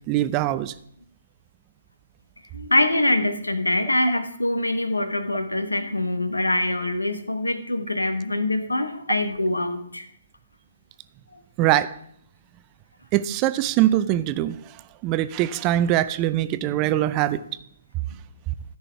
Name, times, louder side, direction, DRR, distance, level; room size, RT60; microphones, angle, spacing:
voice 1, 0.1-0.7 11.6-12.0 13.1-14.6 15.0-17.4, right 13 dB, 25° right, 0.4 m, -22 dB
voice 2, 2.5-10.1, left 1 dB, 85° left, 1.1 m, -24 dB
14.0 x 5.4 x 4.5 m
figure-of-eight pair, 135°, 0 cm